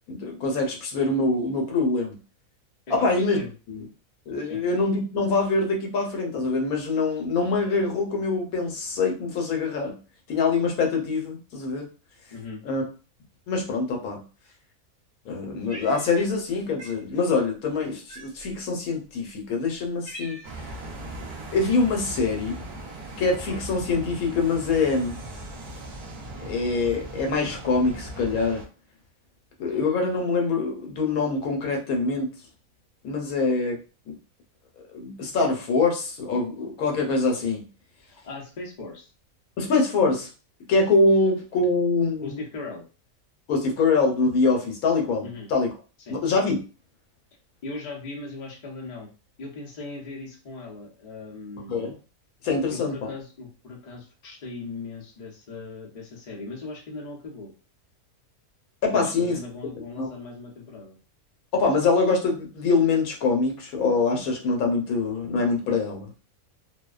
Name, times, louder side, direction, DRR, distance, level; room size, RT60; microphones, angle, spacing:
voice 1, 0.1-2.2 2.9-3.4 3.7-3.8 4.3-10.0 10.3-11.8 12.7-12.8 13.5-14.2 15.3-20.4 21.5-22.6 23.2-25.2 26.4-28.6 29.6-32.3 33.0-33.8 34.9-37.7 39.6-40.3 40.7-42.4 43.5-45.3 45.5-45.7 46.1-46.6 51.7-51.9 52.4-53.1 58.8-59.4 60.0-60.1 61.5-66.1, left 3 dB, 75° left, 1 dB, 1.1 m, -24 dB
voice 2, 2.9-3.5 4.5-4.6 12.3-12.6 38.0-39.1 42.2-42.8 45.2-45.5 46.0-46.2 47.6-49.1 49.4-51.9 52.7-57.5 58.9-61.0, left 3 dB, 40° left, -2 dB, 0.6 m, -38 dB
Cat, 15.7-16.5 16.8-17.0 18.1-18.6 19.3-19.4 19.7-20.7, right 1 dB, 50° right, 1.0 m, -43 dB
sound 1, 20.4-28.7, right 1 dB, 85° right, 0.4 m, -38 dB
2.6 x 2.1 x 2.3 m, 0.34 s
omnidirectional pair, 1.5 m